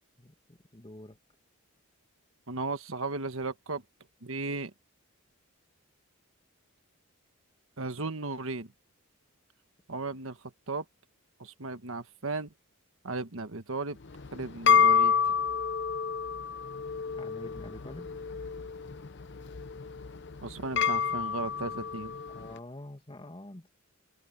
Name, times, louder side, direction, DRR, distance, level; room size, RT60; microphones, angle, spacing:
voice 1, 0.2-1.2 17.2-18.1 22.3-23.7, left 1 dB, 25° left, 1.9 m, -46 dB
voice 2, 2.5-3.8 4.2-4.7 7.8-8.7 9.9-10.4 10.7-10.8 11.4-12.5 13.0-14.0 14.3-15.1 20.4-22.1, right 3 dB, 65° right, 1.4 m, -35 dB
sound 1, 14.0-22.5, left 6 dB, 50° left, 0.7 m, -29 dB
open air
head